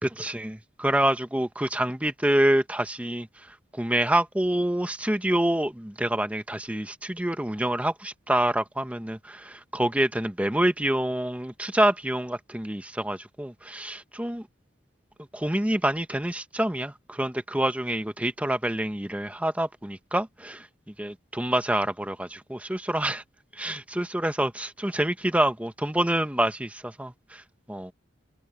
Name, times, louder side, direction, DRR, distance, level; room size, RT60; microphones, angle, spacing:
voice 1, 0.0-3.3 3.7-14.5 15.3-20.7 21.0-23.2 23.5-27.4 27.7-27.9, right 1 dB, 10° right, 0.9 m, -27 dB
head